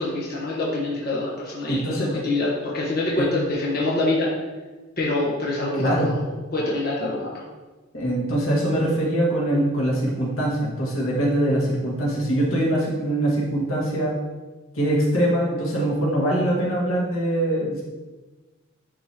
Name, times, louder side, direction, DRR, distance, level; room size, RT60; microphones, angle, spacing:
voice 1, 0.0-4.3 5.0-6.2 6.5-7.4, left 2 dB, 50° left, -5 dB, 1.3 m, -25 dB
voice 2, 1.7-2.1 3.2-3.3 5.8-6.2 7.0-7.1 7.9-14.2 14.7-17.8, right 1 dB, 90° left, -4 dB, 2.0 m, -23 dB
11.0 x 4.1 x 3.0 m, 1.2 s
head